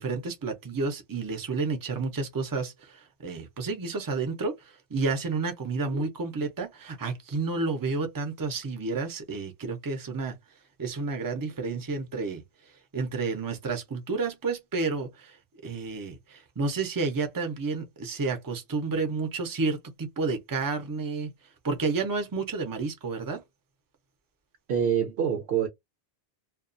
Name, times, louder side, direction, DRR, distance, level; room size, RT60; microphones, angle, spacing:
voice 1, 0.0-10.4 10.8-12.4 12.9-15.4 15.6-21.3 21.6-23.4, right 4 dB, 25° right, 0.5 m, -30 dB
voice 2, 24.7-25.7, right 8 dB, 65° right, 0.9 m, -26 dB
2.3 x 2.3 x 2.5 m
omnidirectional pair, 1.2 m